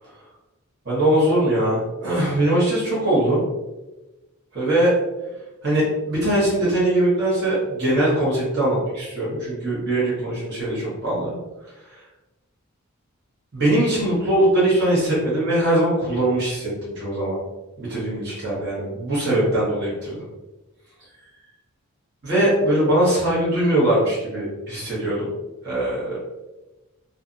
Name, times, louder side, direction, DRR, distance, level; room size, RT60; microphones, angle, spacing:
voice 1, 0.8-3.4 4.5-4.9 5.6-11.3 13.5-17.4 17.8-20.1 22.2-25.3 25.6-26.2, right 1 dB, 50° right, -8 dB, 1.1 m, -21 dB
2.7 x 2.5 x 2.5 m, 1.1 s
head